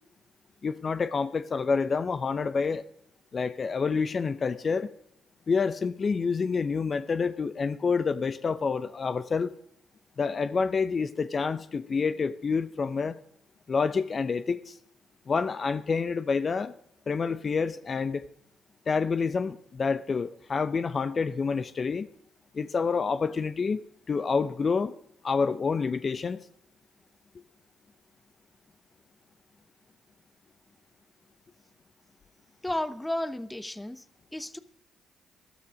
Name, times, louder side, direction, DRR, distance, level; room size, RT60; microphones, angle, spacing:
voice 1, 0.6-2.8 3.3-4.9 5.5-9.5 10.2-13.2 13.7-14.8 15.3-16.7 17.1-18.2 18.9-22.1 22.5-24.9 25.2-26.4, left 5 dB, 45° left, 14 dB, 0.6 m, -28 dB
voice 2, 32.6-34.0 34.3-34.6, left 1 dB, 10° left, 15 dB, 0.9 m, -32 dB
13.5 x 12.0 x 5.1 m, 0.71 s
hypercardioid pair, 55°, 0 cm